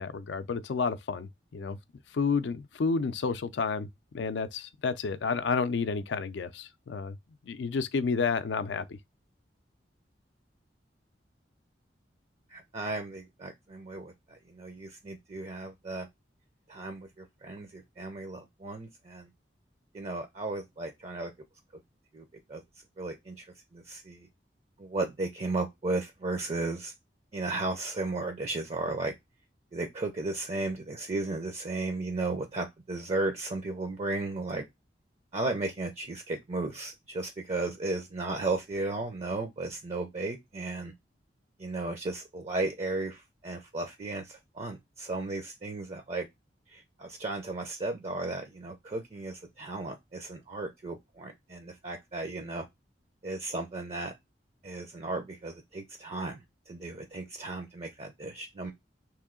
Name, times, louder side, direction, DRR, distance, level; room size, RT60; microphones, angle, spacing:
voice 1, 0.0-1.8 2.1-3.9 4.1-7.2 7.4-9.0, left 5 dB, 80° left, 0.4 m, -30 dB
voice 2, 12.5-16.1 16.7-19.3 19.9-21.3 22.1-22.6 23.0-23.5 23.7-24.3 24.8-26.9 27.3-29.1 29.7-34.7 35.3-40.9 41.6-46.3 46.7-52.7 53.2-54.1 54.6-58.7, right 2 dB, 40° right, 0.5 m, -35 dB
3.1 x 2.7 x 3.6 m
head